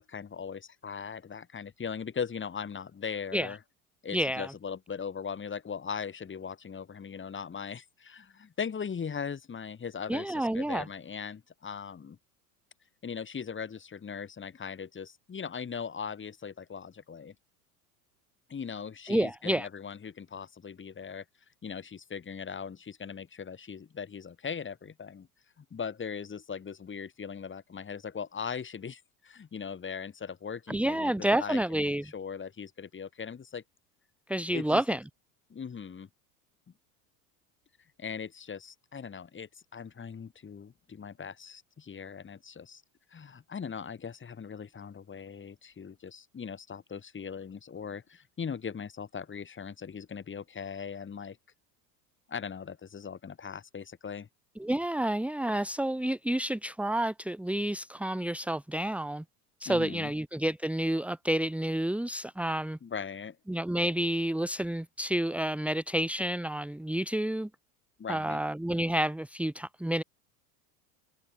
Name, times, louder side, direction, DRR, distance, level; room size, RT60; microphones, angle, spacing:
voice 1, 0.0-3.6 4.0-12.2 13.0-17.3 18.5-21.2 21.6-25.3 25.6-33.6 34.5-34.8 35.5-36.1 38.0-42.8 43.1-51.4 52.3-54.3 59.6-60.1 62.8-63.4 68.0-68.4, left 6 dB, 25° left, 4.8 m, -39 dB
voice 2, 4.1-4.5 10.1-10.9 19.1-19.7 30.7-32.0 34.3-35.0 54.6-59.2 59.6-62.8 63.5-67.5 68.1-70.0, right 1 dB, 5° right, 1.7 m, -29 dB
hypercardioid pair, 90°, 47 cm